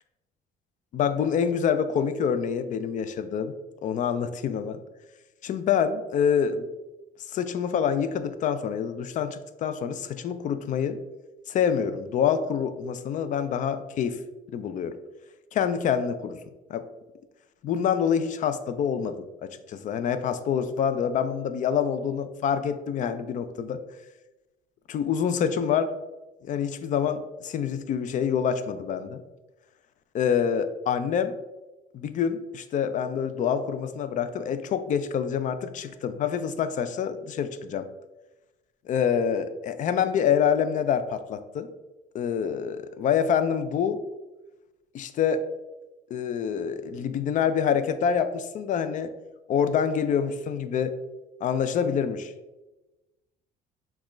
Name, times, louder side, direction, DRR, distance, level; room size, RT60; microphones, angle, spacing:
voice 1, 0.9-3.5 3.8-4.8 5.4-6.7 7.3-11.0 11.5-14.2 14.5-14.9 15.5-16.4 16.7-16.8 17.6-23.8 24.9-25.9 26.4-29.2 30.1-31.3 31.9-37.9 38.9-41.7 42.1-44.0 44.9-45.4 46.1-49.1 49.5-50.9 51.4-52.3, left 7 dB, 50° left, 11 dB, 0.4 m, -26 dB
6.2 x 2.4 x 3.0 m, 1.1 s
cardioid pair, 110°, 17 cm